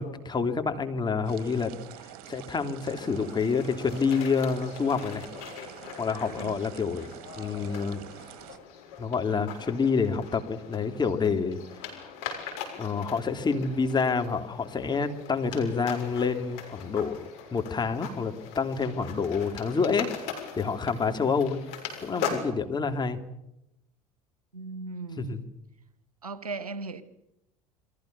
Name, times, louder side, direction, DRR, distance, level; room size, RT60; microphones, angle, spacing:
voice 1, 0.0-1.7 2.3-5.3 6.0-8.1 9.0-11.6 11.9-12.1 12.8-20.1 20.6-21.6 22.0-23.2 25.2-25.4, left 5 dB, 25° left, 3.3 m, -28 dB
sound 1, 1.2-8.6, right 11 dB, 55° right, 2.5 m, -46 dB
sound 2, 2.8-22.5, left 7 dB, 60° left, 6.8 m, -41 dB
voice 2, 6.3-6.6 21.0-21.2 24.5-25.4 26.2-27.0, right 3 dB, 80° right, 1.3 m, -38 dB
29.0 x 22.5 x 7.0 m
figure-of-eight pair, 65°, 19 cm